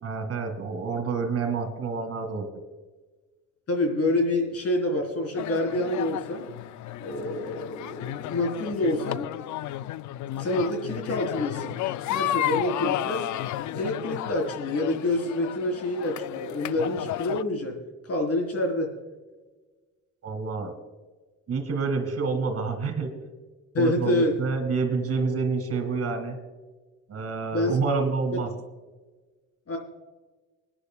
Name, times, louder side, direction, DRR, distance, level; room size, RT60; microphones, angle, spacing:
voice 1, 0.0-2.5 20.2-20.7 21.5-23.1 23.8-26.4 27.1-28.5, right 4 dB, 55° right, 7 dB, 2.2 m, -28 dB
voice 2, 3.7-6.5 7.0-9.3 10.4-11.8 12.1-13.3 13.7-19.0 23.7-24.4 27.5-27.8 29.7-29.8, left 1 dB, 50° left, 2 dB, 3.8 m, -27 dB
sound 1, 5.4-17.4, left 13 dB, 70° left, 0.4 m, -33 dB
25.0 x 10.0 x 2.3 m, 1.3 s
cardioid pair, 90°, 30 cm